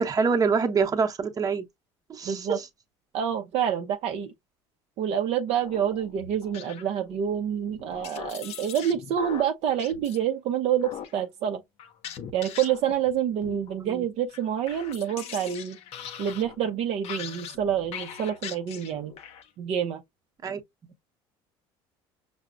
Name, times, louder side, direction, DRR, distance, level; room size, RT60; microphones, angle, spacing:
voice 1, 0.0-1.6 2.1-2.5 13.8-14.0 20.4-20.6, right 5 dB, 30° right, 0.8 m, -25 dB
voice 2, 2.2-2.6 3.1-4.3 5.0-11.6 12.3-15.8 16.2-19.1 19.6-20.0, right 9 dB, 60° right, 0.5 m, -27 dB
sound 1, 5.5-7.2 7.7-10.2 10.8-11.2 11.8-13.2 13.4-14.0 14.3-19.5, left 8 dB, 60° left, 0.6 m, -41 dB
5.7 x 2.0 x 2.4 m
supercardioid pair, 95°, 12 cm